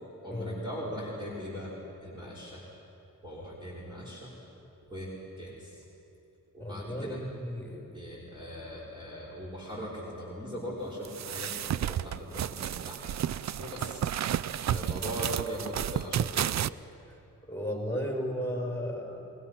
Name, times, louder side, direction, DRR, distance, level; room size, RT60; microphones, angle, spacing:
voice 1, 0.2-1.7 2.0-2.6 3.2-4.3 4.9-5.1 5.4-5.8 6.5-7.2 7.9-11.5 11.8-13.2 13.6-14.0 14.3-16.7, equal, 15° right, -6 dB, 5.5 m, -40 dB
voice 2, 6.6-8.0 17.1-17.2 17.5-19.2, equal, 5° left, 0 dB, 6.8 m, -34 dB
sound 1, 11.0-16.7, right 10 dB, 50° right, 0.5 m, -32 dB
29.5 x 22.0 x 5.9 m, 2.8 s
cardioid pair, 65°, 35 cm